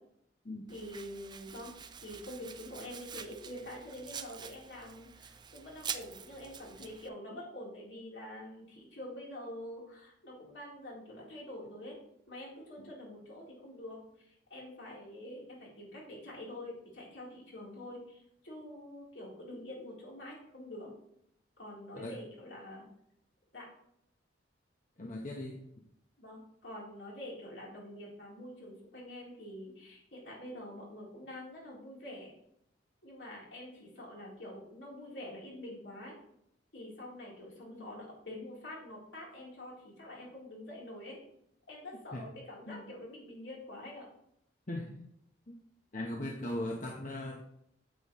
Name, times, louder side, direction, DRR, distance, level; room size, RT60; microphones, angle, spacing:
voice 1, 0.7-1.7 2.0-12.0 12.3-14.0 14.3-20.9 21.6-22.9 23.5-23.7 26.2-32.3 33.0-36.2 36.7-41.2 41.7-44.1, left 1 dB, 70° left, -4 dB, 3.7 m, -46 dB
Domestic sounds home sounds, 0.7-7.1, right 7 dB, 25° right, 0.4 m, -46 dB
voice 2, 25.0-25.6 42.1-42.2 42.7-42.9 44.7-45.0 45.5-45.6 45.9-47.4, left 1 dB, 45° left, 0 dB, 1.0 m, -38 dB
9.0 x 8.3 x 3.1 m, 0.74 s
head